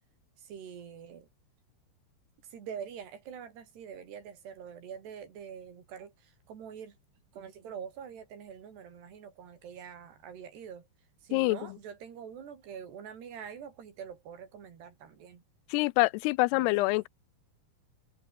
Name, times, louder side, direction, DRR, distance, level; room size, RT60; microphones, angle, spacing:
voice 1, 0.4-1.3 2.4-7.0 7.3-10.9 11.2-15.4 16.5-16.9, right 7 dB, 85° right, 5.7 m, -45 dB
voice 2, 15.7-17.1, left 23 dB, 85° left, 2.6 m, -26 dB
omnidirectional pair, 4.7 m